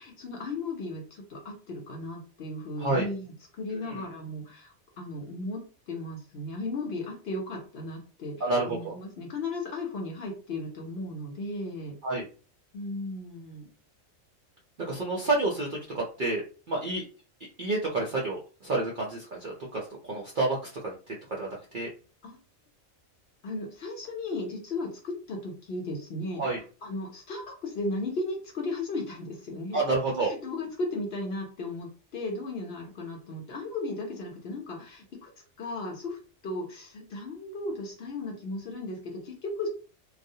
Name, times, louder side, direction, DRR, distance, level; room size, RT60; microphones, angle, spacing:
voice 1, 0.0-8.4 8.7-11.9 12.7-13.7 22.2-22.4 23.4-26.4 26.8-29.8 30.2-35.3 35.6-36.2 36.4-39.7, left 2 dB, 60° left, 1 dB, 0.8 m, -35 dB
voice 2, 8.4-8.9 12.0-12.3 14.8-16.4 16.7-17.0 17.6-21.9 26.4-26.6 29.7-30.3, right 2 dB, 60° right, -3 dB, 0.5 m, -29 dB
2.3 x 2.0 x 2.6 m, 0.36 s
omnidirectional pair, 1.4 m